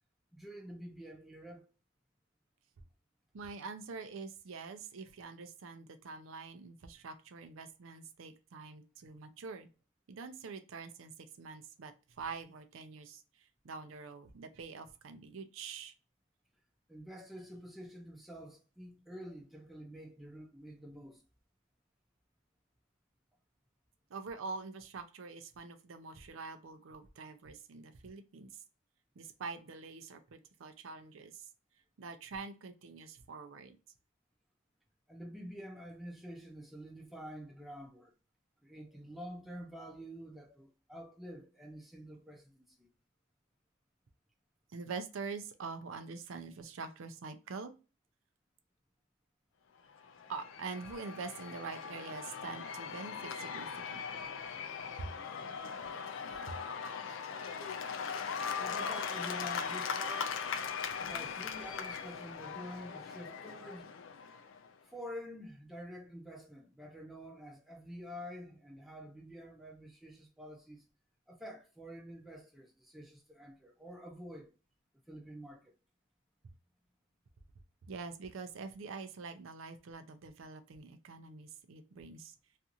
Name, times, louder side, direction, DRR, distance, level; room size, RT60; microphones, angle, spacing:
voice 1, 0.3-1.7 16.9-21.2 35.1-38.1 38.6-42.9 58.6-60.3 61.0-63.9 64.8-70.8 71.3-74.5 75.1-75.7, equal, ahead, 0.4 m, -48 dB
voice 2, 3.3-9.7 10.1-11.1 11.4-15.9 24.1-28.5 29.2-31.4 32.0-33.8 44.7-47.7 50.3-54.2 55.0-55.1 56.5-56.6 77.9-82.3, right 4 dB, 75° right, 0.4 m, -45 dB
Cheering / Applause / Crowd, 49.9-64.7, left 6 dB, 65° left, 0.3 m, -40 dB
2.5 x 2.4 x 2.7 m
head